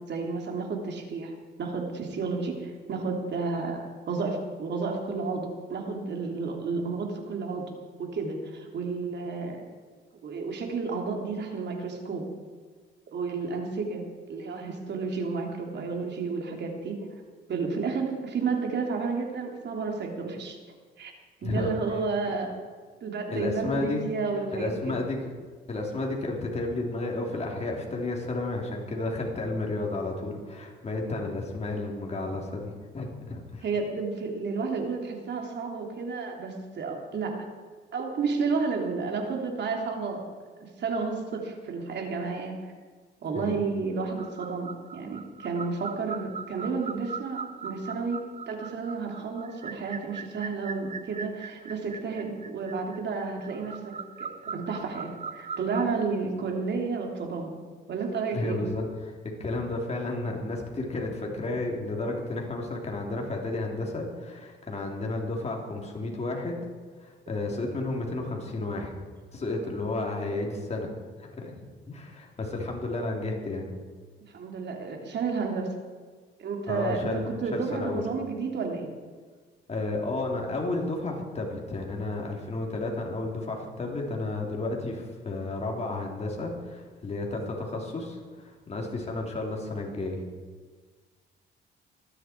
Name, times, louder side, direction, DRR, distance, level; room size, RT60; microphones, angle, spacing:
voice 1, 0.1-1.3 1.6-7.7 8.0-9.6 10.2-12.3 13.1-14.0 14.3-17.0 17.5-20.6 21.0-21.1 21.4-22.5 23.0-25.0 33.6-37.4 37.9-40.2 40.6-42.7 43.2-48.2 48.5-57.6 57.9-58.6 74.3-75.7 76.4-78.9, right 4 dB, 60° right, 2 dB, 3.3 m, -31 dB
voice 2, 21.4-21.7 23.3-24.1 24.5-25.2 25.7-33.6 43.3-43.6 58.3-59.1 59.4-66.6 67.0-68.9 69.3-70.9 71.2-73.7 76.7-78.0 79.7-90.2, left 2 dB, 35° left, 0 dB, 3.7 m, -32 dB
sound 1, 44.2-55.8, right 5 dB, 35° right, 0.7 m, -40 dB
19.5 x 13.0 x 4.7 m, 1.5 s
cardioid pair, 90°, 20 cm